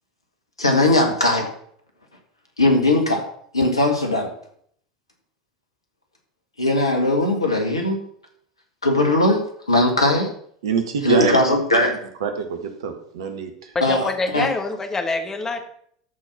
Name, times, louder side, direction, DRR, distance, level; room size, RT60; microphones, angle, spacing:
voice 1, 0.6-1.5 2.6-3.2 3.5-4.3 6.6-8.0 8.8-10.3 11.0-11.9 13.8-14.5, left 2 dB, 85° left, 2 dB, 1.9 m, -19 dB
voice 2, 10.6-11.4 11.8-11.9 12.2-13.7 14.0-14.5, right 6 dB, 65° right, 6 dB, 1.6 m, -26 dB
voice 3, 13.7-15.6, left 3 dB, 20° left, 6 dB, 1.6 m, -25 dB
13.0 x 4.6 x 5.9 m, 0.65 s
figure-of-eight pair, 80°, 3 cm